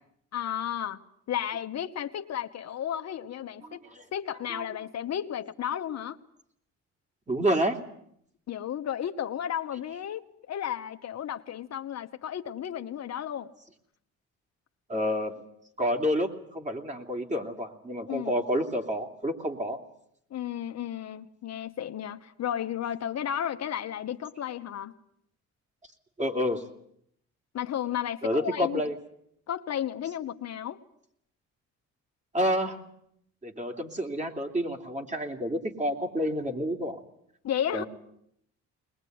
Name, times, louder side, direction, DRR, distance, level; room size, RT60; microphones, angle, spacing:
voice 1, 0.3-1.0 1.3-3.8 4.1-6.2 8.5-13.5 18.1-18.4 20.3-24.9 27.5-28.8 29.5-30.8 37.4-37.8, left 10 dB, 60° left, 8 dB, 1.2 m, -33 dB
voice 2, 3.6-4.0 4.5-4.6 7.3-7.8 14.9-15.4 15.8-19.8 26.2-26.6 28.2-28.9 32.3-32.8 33.4-37.0 37.7-37.9, equal, 25° right, 4 dB, 3.1 m, -29 dB
21.0 x 21.0 x 9.4 m, 0.72 s
cardioid pair, 90°, 30 cm